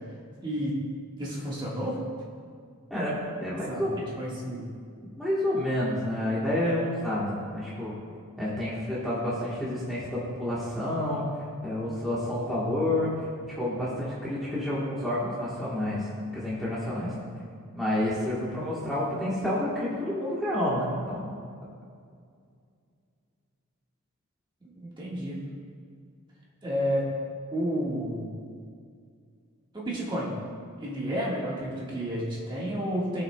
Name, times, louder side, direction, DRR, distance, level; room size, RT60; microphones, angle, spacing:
voice 1, 0.4-0.8 1.2-2.0 3.7-3.9 4.2-4.7 24.6-25.5 26.6-27.1 27.5-28.4 29.7-30.4 30.8-33.2, equal, 20° right, -6 dB, 1.5 m, -31 dB
voice 2, 2.9-4.0 5.2-7.9 8.4-11.3 11.6-13.1 13.5-16.0 16.3-17.1 17.7-21.3, left 1 dB, ahead, -9 dB, 1.2 m, -29 dB
16.5 x 5.7 x 2.2 m, 2.2 s
head